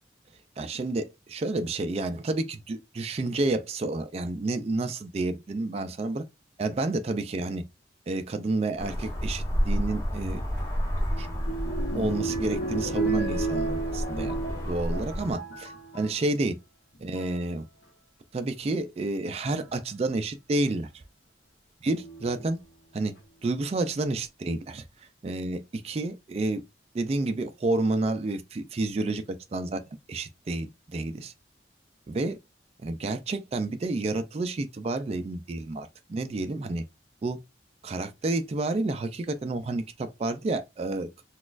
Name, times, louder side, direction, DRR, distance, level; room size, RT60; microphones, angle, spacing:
voice 1, 0.6-6.2 6.6-7.6 8.1-10.4 11.2-11.3 11.9-16.6 17.0-17.7 18.3-21.0 21.8-22.6 22.9-23.1 23.4-26.6 26.9-29.8 30.1-31.3 32.1-32.4 32.8-36.8 37.2-37.4 37.8-41.1, right 2 dB, 35° right, 0.3 m, -30 dB
sound 1, 8.8-15.3, equal, 15° left, 0.9 m, -31 dB
sound 2, 10.6-16.2 16.9-17.4 18.6-18.7 19.4-19.7 21.9-22.5 23.2-23.3 23.5-23.6, right 3 dB, 65° left, 0.9 m, -33 dB
4.0 x 2.4 x 2.4 m
head